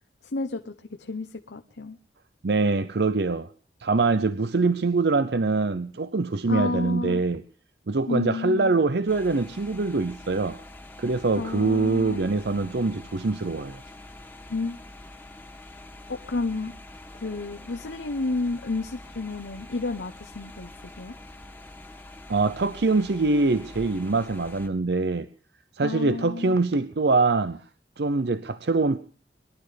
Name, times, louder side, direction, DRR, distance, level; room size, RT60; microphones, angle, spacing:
voice 1, 0.2-2.0 6.5-7.2 8.1-8.8 11.4-12.2 14.5-14.8 16.1-16.7 17.1-21.1 25.8-26.6, left 3 dB, 85° left, 0.9 m, -31 dB
voice 2, 2.4-3.5 3.8-7.4 7.9-10.6 11.0-13.8 22.3-25.3 25.8-27.6 28.0-29.0, right 3 dB, 65° right, 0.7 m, -24 dB
sound 1, 9.1-24.7, left 2 dB, 10° left, 1.7 m, -45 dB
22.5 x 12.0 x 5.0 m
head